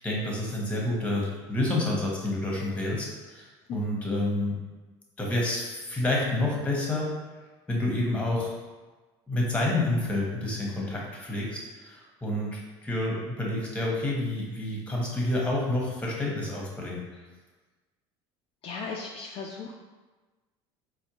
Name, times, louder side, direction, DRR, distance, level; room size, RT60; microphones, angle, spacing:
voice 1, 0.0-4.5 5.2-7.1 7.7-8.5 9.3-17.2, left 1 dB, 10° left, -3 dB, 1.1 m, -29 dB
voice 2, 18.6-19.7, left 4 dB, 45° left, -1 dB, 0.4 m, -36 dB
4.2 x 2.2 x 2.9 m, 1.3 s
supercardioid pair, 95°, 13 cm